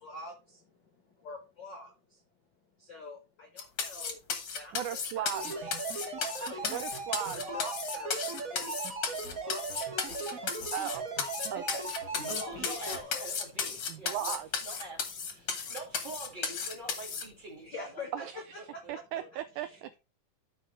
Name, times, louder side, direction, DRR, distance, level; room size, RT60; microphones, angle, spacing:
voice 1, 0.0-2.2 2.8-4.2 4.5-7.0 7.4-11.0 11.6-11.8 12.1-13.3 14.0-14.1 15.4-15.7 17.6-18.3 18.7-18.9 19.7-19.8, left 3 dB, 75° left, 4 dB, 1.0 m, -46 dB
sound 1, 3.6-17.2, left 6 dB, 50° left, 1.3 m, -35 dB
voice 2, 4.7-5.8 6.7-7.5 10.7-11.0 11.5-11.9 13.9-14.8 18.1-18.4 18.9-19.9, right 11 dB, 90° right, 12 dB, 1.7 m, -37 dB
sound 2, 5.3-13.0, right 3 dB, 60° right, 0.9 m, -38 dB
voice 3, 12.1-14.4 14.6-18.0 18.8-19.3, right 2 dB, 20° right, 0 dB, 1.5 m, -45 dB
13.0 x 5.3 x 3.2 m, 0.29 s
omnidirectional pair, 4.0 m